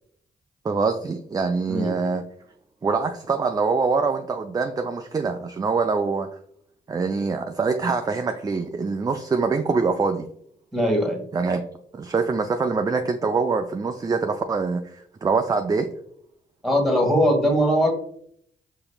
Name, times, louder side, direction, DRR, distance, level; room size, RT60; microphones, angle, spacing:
voice 1, 0.6-2.2 2.8-6.3 6.9-10.3 11.3-11.6 11.9-15.9, right 4 dB, 20° right, 6 dB, 0.3 m, -24 dB
voice 2, 10.7-11.2 16.6-17.9, equal, ahead, 2 dB, 1.4 m, -20 dB
4.9 x 2.8 x 2.3 m, 0.67 s
hypercardioid pair, 40°, 20 cm